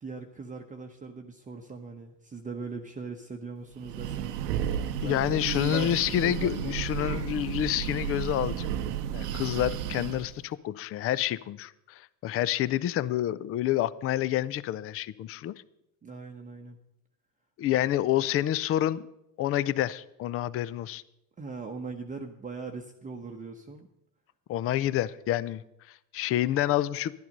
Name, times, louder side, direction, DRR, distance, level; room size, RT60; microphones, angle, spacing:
voice 1, 0.0-4.3 4.9-7.3 16.0-16.8 21.4-23.9, right 4 dB, 15° right, 2 dB, 0.9 m, -40 dB
Breathing, 3.7-10.4, right 9 dB, 80° right, 0.9 m, -33 dB
voice 2, 5.0-8.8 9.1-15.5 17.6-19.1 19.4-21.0 24.5-25.6 25.9-27.1, left 12 dB, 30° left, 19 dB, 0.5 m, -28 dB
12.0 x 11.0 x 5.3 m, 0.82 s
hypercardioid pair, 90°, 47 cm